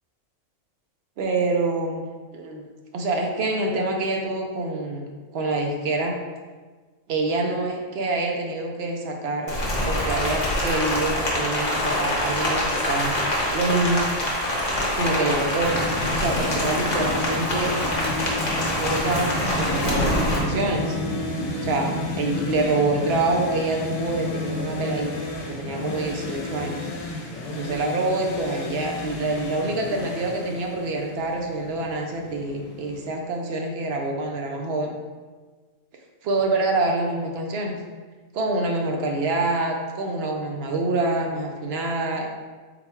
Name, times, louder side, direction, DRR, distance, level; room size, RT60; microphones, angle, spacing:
voice 1, 1.2-2.1 2.3-2.6 2.9-6.1 7.1-9.6 9.8-13.2 13.5-14.1 14.9-15.7 16.1-17.7 18.6-21.0 21.6-25.2 25.5-26.8 27.5-34.9 36.2-37.8 38.3-42.3, right 2 dB, 65° right, 1 dB, 0.7 m, -26 dB
Rain, 9.5-20.4, left 1 dB, 40° left, 0.8 m, -25 dB
sound 1, 15.6-33.1, left 2 dB, 65° left, 1.0 m, -31 dB
3.9 x 2.2 x 4.3 m, 1.4 s
omnidirectional pair, 1.4 m